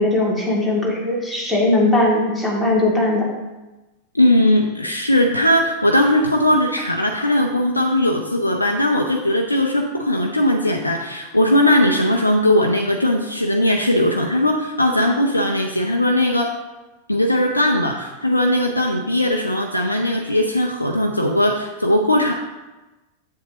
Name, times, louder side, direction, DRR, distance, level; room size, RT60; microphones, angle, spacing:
voice 1, 0.0-3.3, left 2 dB, 5° right, -5 dB, 2.3 m, -19 dB
voice 2, 4.1-16.5 17.1-22.3, left 1 dB, 85° left, 2 dB, 0.6 m, -19 dB
7.6 x 7.2 x 2.9 m, 1.1 s
figure-of-eight pair, 90°, 0 cm